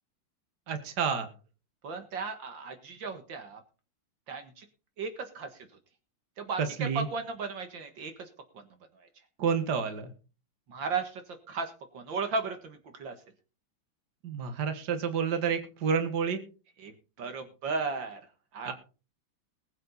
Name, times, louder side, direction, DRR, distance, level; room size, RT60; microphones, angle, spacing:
voice 1, 0.7-1.3 6.6-7.1 9.4-10.1 14.2-16.4 18.7-18.8, right 6 dB, 60° right, 8 dB, 2.1 m, -29 dB
voice 2, 1.8-3.6 4.3-4.7 5.0-5.5 6.4-8.3 9.0-9.1 10.7-11.2 11.5-13.2 16.8-18.2 18.5-18.7, right 4 dB, 75° right, 7 dB, 2.2 m, -35 dB
20.5 x 8.0 x 4.1 m, 0.35 s
omnidirectional pair, 2.1 m